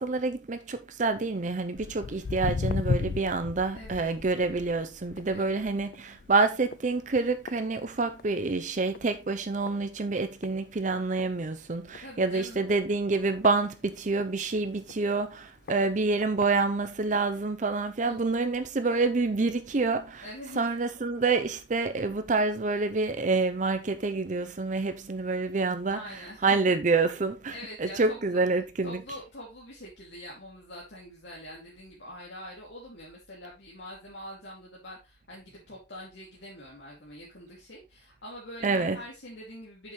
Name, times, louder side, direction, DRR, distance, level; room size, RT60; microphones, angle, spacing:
voice 1, 0.0-20.3 20.6-29.0 38.6-39.0, right 3 dB, 45° right, 0.6 m, -27 dB
Walk footsteps, 1.8-8.4 8.7-9.1 9.7-9.8 10.4-10.5 10.9-11.0 11.2-11.3 11.9-12.0 12.7-14.3 14.9-15.0 15.7-15.8 16.2-16.5 17.1-17.2, left 4 dB, 55° left, 0.4 m, -35 dB
voice 2, 3.7-4.1 5.3-5.6 12.0-12.6 18.0-18.2 20.2-20.6 25.8-26.4 27.5-28.4 28.8-39.9, equal, 75° left, 2.4 m, -44 dB
8.4 x 6.7 x 3.1 m
head